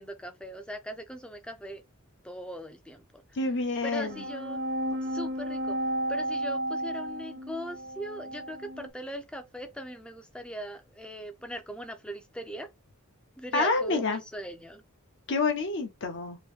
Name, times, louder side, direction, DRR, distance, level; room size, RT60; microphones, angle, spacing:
voice 1, 0.0-1.8 2.2-3.2 3.8-4.6 5.0-5.8 6.1-12.7 13.4-14.8, equal, 5° left, 0.5 m, -40 dB
voice 2, 3.3-4.2 13.5-14.2 15.3-16.4, left 3 dB, 55° left, 0.8 m, -28 dB
sound 1, 3.9-8.9, right 1 dB, 50° right, 0.6 m, -33 dB
3.0 x 2.6 x 3.3 m
head